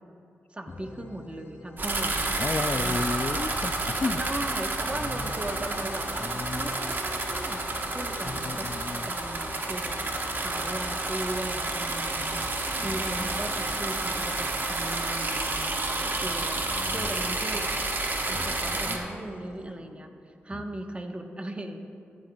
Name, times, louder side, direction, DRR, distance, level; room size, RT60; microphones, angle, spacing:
voice 1, 0.5-3.0 4.2-10.0 10.4-16.6 16.9-17.7 18.3-20.1 20.4-21.8, right 1 dB, 25° right, 4 dB, 1.1 m, -38 dB
sound 1, 0.7-19.7, left 2 dB, 60° left, 1.6 m, -46 dB
sound 2, 1.8-19.0, right 2 dB, 45° right, 1.2 m, -30 dB
voice 2, 2.4-4.2 5.0-5.4 6.1-7.0 8.2-9.1 12.8-13.0 16.7-17.1 18.3-19.1, left 3 dB, 35° left, 11 dB, 0.3 m, -34 dB
15.0 x 9.5 x 2.3 m, 2.4 s
cardioid pair, 45°, 5 cm